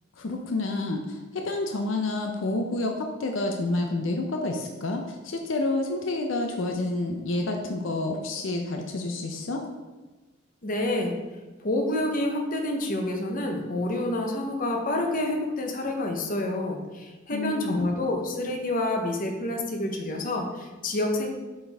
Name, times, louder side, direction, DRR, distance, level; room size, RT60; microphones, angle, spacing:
voice 1, 0.2-9.6 17.3-17.9, left 2 dB, 80° left, 3 dB, 0.6 m, -29 dB
voice 2, 10.6-11.1 11.6-21.3, left 1 dB, 45° left, 2 dB, 0.9 m, -28 dB
7.6 x 4.4 x 3.5 m, 1.2 s
head